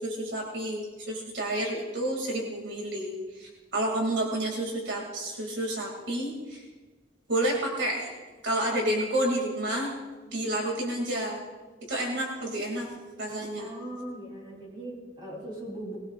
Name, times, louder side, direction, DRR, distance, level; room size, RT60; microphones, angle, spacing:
voice 1, 0.0-6.6 7.3-8.1 8.4-9.9 10.3-11.4 11.9-12.9 13.2-13.8, right 1 dB, 70° right, 0 dB, 2.5 m, -30 dB
voice 2, 13.6-16.1, right 1 dB, 25° right, -3 dB, 3.7 m, -39 dB
20.5 x 17.5 x 2.5 m, 1.3 s
head